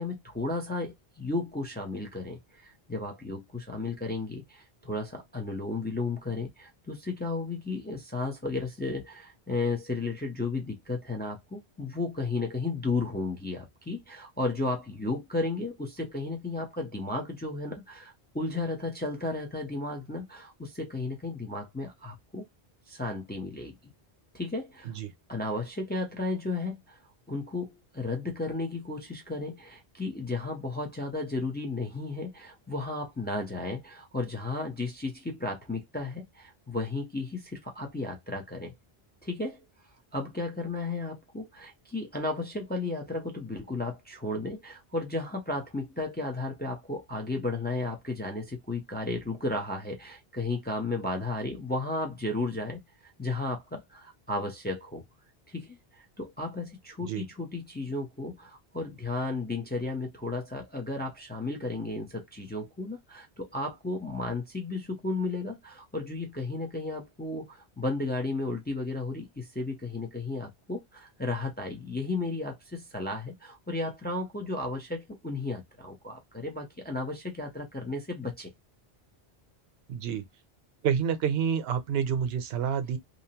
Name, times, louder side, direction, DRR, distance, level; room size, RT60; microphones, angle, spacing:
voice 1, 0.0-22.5 22.9-23.8 24.3-24.9 25.3-27.0 27.3-38.7 39.2-39.7 40.1-52.8 53.2-55.0 55.5-78.5, left 2 dB, 15° left, 0.4 m, -34 dB
voice 2, 79.9-80.2 80.8-83.0, right 7 dB, 75° right, 0.8 m, -28 dB
2.7 x 2.0 x 2.7 m
omnidirectional pair, 1.1 m